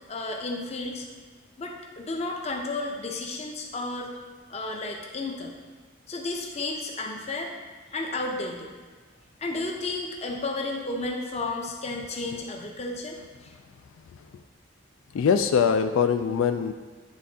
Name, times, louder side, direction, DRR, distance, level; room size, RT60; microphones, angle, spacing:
voice 1, 0.1-1.1 1.6-4.1 4.5-5.5 6.1-7.5 7.9-8.7 9.4-13.5, left 2 dB, 30° left, 1 dB, 0.6 m, -32 dB
voice 2, 15.1-16.7, left 6 dB, 85° left, 8 dB, 0.3 m, -22 dB
9.6 x 3.7 x 2.7 m, 1.5 s
head